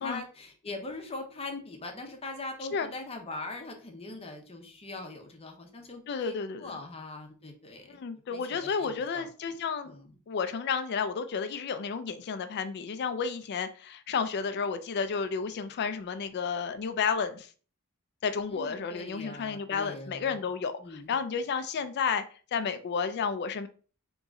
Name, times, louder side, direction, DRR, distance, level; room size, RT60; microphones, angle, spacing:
voice 1, 0.0-8.0 8.3-9.3 9.9-10.1 18.5-20.4 20.8-21.2, left 2 dB, 30° left, 3 dB, 0.8 m, -41 dB
voice 2, 6.1-6.8 7.9-9.9 10.3-17.5 18.2-22.2 22.5-23.7, left 6 dB, 50° left, 11 dB, 0.4 m, -32 dB
3.7 x 3.0 x 3.6 m, 0.40 s
head